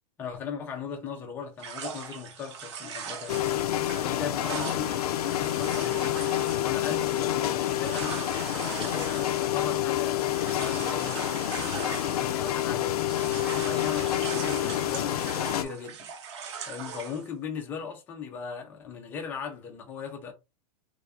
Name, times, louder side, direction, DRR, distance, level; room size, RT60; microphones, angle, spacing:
voice 1, 0.2-3.7 4.0-4.9 5.3-6.2 6.6-8.2 8.8-11.2 12.1-13.1 13.6-16.1 16.7-20.3, left 7 dB, 10° left, 0.5 m, -38 dB
sound 1, 1.6-12.7 13.0-17.3, right 6 dB, 50° right, 0.8 m, -40 dB
sound 2, 3.3-15.6, left 12 dB, 80° left, 0.5 m, -28 dB
3.3 x 2.5 x 3.4 m
supercardioid pair, 180°, 19 cm